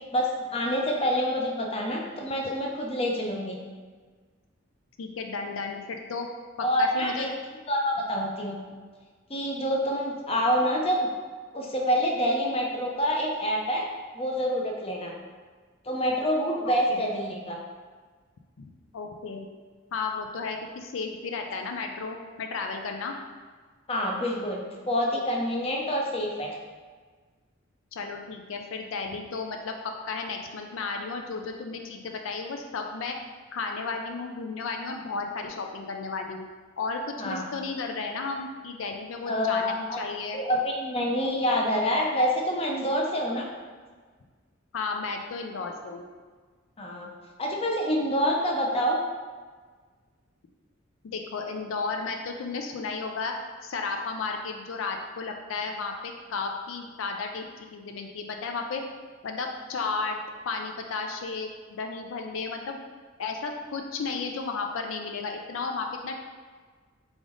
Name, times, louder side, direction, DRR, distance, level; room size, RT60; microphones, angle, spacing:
voice 1, 0.1-3.6 6.6-7.3 7.7-8.6 9.3-11.1 11.5-13.8 14.1-15.1 15.8-17.6 23.9-24.6 24.9-26.5 37.2-37.4 39.3-40.0 40.3-43.5 46.8-47.1 47.4-49.0, equal, 30° left, 0 dB, 0.6 m, -27 dB
voice 2, 5.0-6.3 6.6-7.3 16.6-17.0 18.6-19.5 19.9-23.1 27.9-33.2 33.5-36.4 36.8-40.4 44.7-46.0 51.0-53.3 53.6-57.5 57.7-58.8 59.2-60.2 60.4-62.8 63.2-66.3, left 4 dB, 85° left, 3 dB, 0.4 m, -33 dB
3.7 x 3.4 x 3.7 m, 1.5 s
head